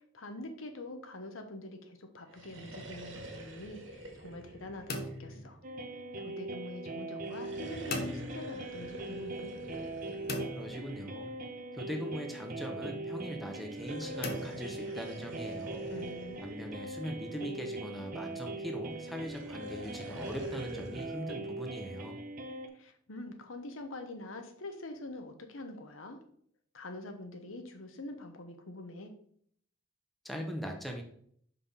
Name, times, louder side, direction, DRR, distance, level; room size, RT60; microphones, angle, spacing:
voice 1, 0.1-5.6 6.2-9.5 15.9-16.4 22.7-26.2 26.7-29.1, left 2 dB, 85° left, 6 dB, 1.0 m, -45 dB
sound 1, 2.2-5.8 7.1-11.5 13.6-17.6 18.9-21.2, right 1 dB, 70° right, 1.8 m, -47 dB
sound 2, 4.9-6.2 7.9-8.9 10.3-11.5 14.2-15.4, left 2 dB, 50° left, 0.9 m, -40 dB
sound 3, 5.6-22.7, right 2 dB, 45° right, 0.8 m, -41 dB
voice 2, 10.6-11.3 11.7-15.8 16.4-22.2 30.2-31.0, equal, ahead, 2 dB, 0.8 m, -41 dB
5.6 x 5.6 x 4.1 m, 0.64 s
head